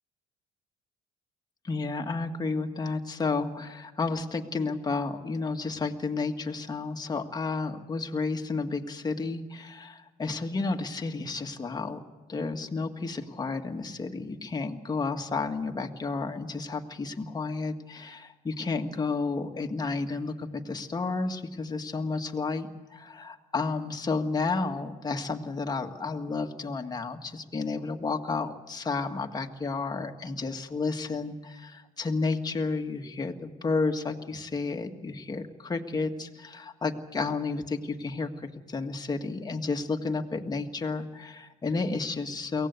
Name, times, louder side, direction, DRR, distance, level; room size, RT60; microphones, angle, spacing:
voice 1, 1.6-12.0 12.3-42.7, left 3 dB, 25° left, 4 dB, 1.7 m, -31 dB
23.5 x 18.0 x 8.4 m, 1.2 s
cardioid pair, 110°, 17 cm